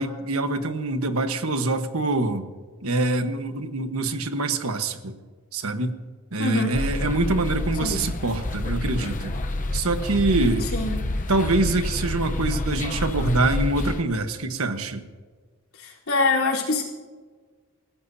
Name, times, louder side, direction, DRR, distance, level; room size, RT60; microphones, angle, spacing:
voice 1, 0.0-2.5 2.8-5.1 5.5-6.0 6.3-9.3 9.7-10.7 11.3-15.0, right 2 dB, 85° right, 8 dB, 1.3 m, -25 dB
voice 2, 6.4-6.7 7.8-8.0 10.6-11.0 15.8-16.8, left 3 dB, 85° left, -3 dB, 3.8 m, -24 dB
sound 1, 6.7-14.0, left 2 dB, 35° left, 0.8 m, -28 dB
29.5 x 15.5 x 2.8 m, 1.5 s
head